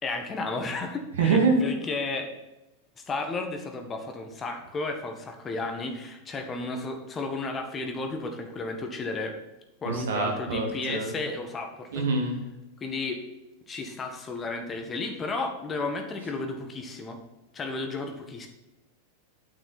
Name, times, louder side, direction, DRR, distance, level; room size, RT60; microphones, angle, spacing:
voice 1, 0.0-2.3 3.0-9.3 9.8-12.0 12.8-13.2 13.7-17.2 17.5-18.5, left 3 dB, 20° left, 4 dB, 1.7 m, -33 dB
voice 2, 1.2-1.6 9.8-11.1 11.9-12.4, right 4 dB, 60° right, 2 dB, 2.4 m, -25 dB
9.1 x 8.8 x 4.4 m, 1.0 s
figure-of-eight pair, 90°, 0 cm